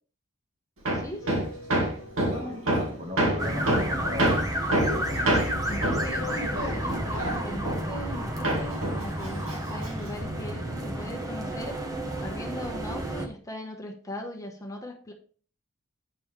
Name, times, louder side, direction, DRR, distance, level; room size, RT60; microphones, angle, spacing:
Hammer, 0.8-8.2 8.4-10.2, right 1 dB, 75° right, 2.1 m, -27 dB
voice 1, 0.9-1.4 5.2-11.7 12.2-15.1, left 1 dB, 15° left, 1.2 m, -39 dB
sound 1, 1.2-4.6 5.1-9.8 10.1-10.9, equal, 70° left, 1.2 m, -46 dB
voice 2, 2.1-4.4, left 2 dB, 40° right, 1.6 m, -37 dB
sound 2, 3.4-13.3, right 1 dB, 15° right, 1.1 m, -31 dB
8.7 x 5.5 x 3.3 m
head